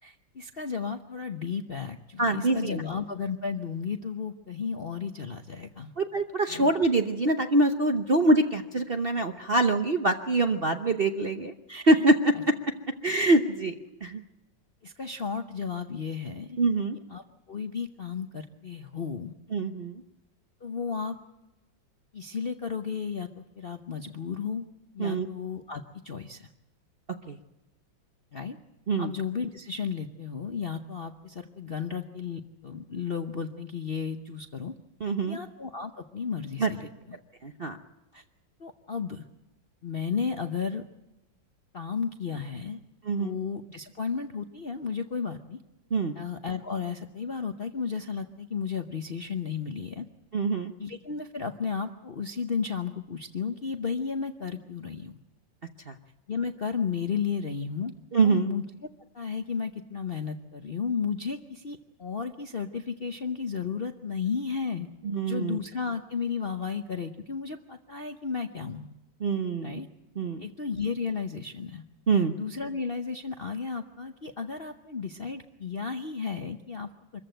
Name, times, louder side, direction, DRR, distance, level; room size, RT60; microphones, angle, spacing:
voice 1, 0.0-5.9 6.5-6.7 11.7-12.0 12.3-12.4 14.0-14.1 14.8-16.6 17.1-19.3 20.6-21.2 22.1-24.7 24.9-26.5 28.3-28.6 29.0-34.7 35.3-37.2 38.1-38.2 38.6-39.2 39.8-40.8 41.7-42.8 43.2-45.6 46.1-50.1 50.8-55.1 56.3-57.9 58.2-58.6 59.1-64.9 65.2-68.9 69.6-69.9 70.4-71.8 72.1-77.2, left 6 dB, 45° left, 7 dB, 0.7 m, -33 dB
voice 2, 2.2-2.8 6.0-11.5 11.9-12.3 13.0-13.7 14.0-14.2 16.6-17.0 19.5-20.0 25.0-25.3 27.3-27.4 28.9-29.1 35.0-35.4 36.6-36.7 37.4-37.8 43.1-43.4 45.9-46.1 50.3-50.7 55.9-56.0 58.1-58.5 65.0-65.6 69.2-69.8 70.2-70.4 72.1-72.3, right 2 dB, 45° right, 7 dB, 0.8 m, -24 dB
25.0 x 14.5 x 9.1 m, 1.0 s
omnidirectional pair, 2.1 m